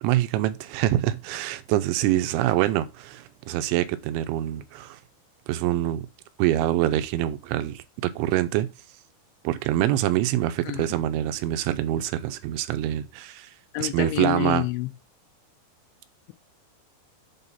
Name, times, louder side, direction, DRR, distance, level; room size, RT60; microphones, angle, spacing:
voice 1, 0.0-5.0 5.5-6.0 6.4-8.7 9.4-13.5 13.8-14.6, right 13 dB, 85° right, 3.0 m, -25 dB
voice 2, 13.7-14.9, left 13 dB, 80° left, 2.9 m, -28 dB
7.9 x 4.1 x 5.5 m
omnidirectional pair, 5.4 m